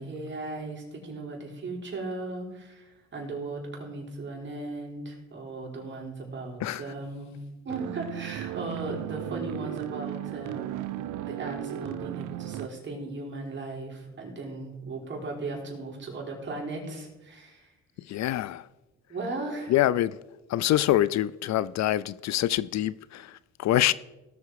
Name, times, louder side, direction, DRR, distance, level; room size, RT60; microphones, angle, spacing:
voice 1, 0.0-7.3 7.6-10.9 11.2-17.7 19.1-19.7, right 2 dB, 40° right, 4.3 m, -37 dB
voice 2, 6.6-6.9 18.0-18.7 19.7-20.2 20.5-23.9, left 13 dB, 65° left, 0.4 m, -25 dB
sound 1, 7.7-12.7, right 13 dB, 90° right, 0.5 m, -35 dB
18.0 x 6.8 x 4.8 m
cardioid pair, 90°, 30 cm